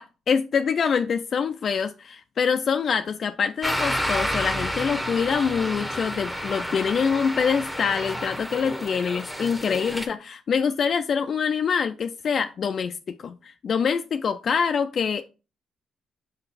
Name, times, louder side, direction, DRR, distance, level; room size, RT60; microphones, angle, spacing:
voice 1, 0.0-15.2, left 6 dB, 50° left, 0.4 m, -25 dB
sound 1, 3.6-10.1, equal, ahead, 0.9 m, -30 dB
6.2 x 3.8 x 4.1 m
cardioid pair, 90°, 0 cm